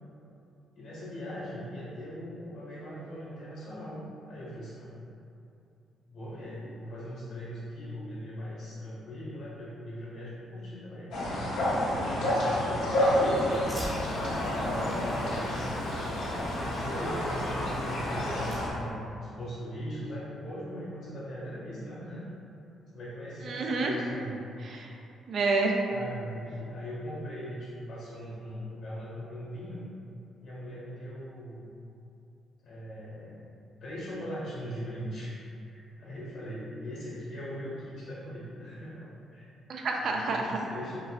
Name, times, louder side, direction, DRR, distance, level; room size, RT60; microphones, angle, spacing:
voice 1, 0.7-4.0 4.3-4.9 6.1-11.1 11.8-12.8 13.6-15.7 16.5-22.3 22.9-24.4 25.9-29.8 30.4-31.7 32.6-33.5 33.8-35.4 35.7-39.4 40.0-41.0, equal, 70° left, -7 dB, 1.4 m, -40 dB
sound 1, 11.1-18.7, left 1 dB, 90° left, 0.8 m, -29 dB
Fire, 12.9-18.9, equal, 15° right, 0.8 m, -45 dB
voice 2, 23.4-23.9 24.6-24.9 25.3-25.8 39.7-40.6, right 3 dB, 60° right, 1 dB, 0.4 m, -28 dB
5.2 x 2.2 x 2.4 m, 2.7 s
cardioid pair, 90°, 0 cm